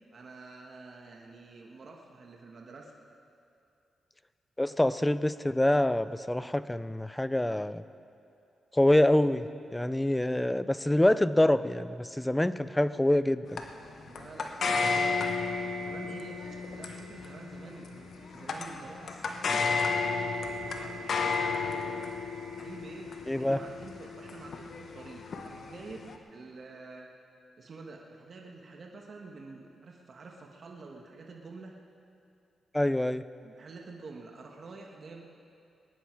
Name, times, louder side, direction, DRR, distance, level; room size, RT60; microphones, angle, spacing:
voice 1, 0.1-2.9 14.1-15.3 15.8-16.4 16.8-20.2 20.8-22.1 22.6-27.1 27.6-31.7 33.4-35.2, right 3 dB, 55° right, 0 dB, 1.8 m, -48 dB
voice 2, 4.6-7.8 8.7-13.6 23.3-23.6 32.7-33.2, left 1 dB, 10° left, 14 dB, 0.5 m, -26 dB
sound 1, 13.6-26.2, left 4 dB, 65° left, 1.1 m, -33 dB
21.5 x 10.0 x 4.8 m, 2.7 s
cardioid pair, 70°, 0 cm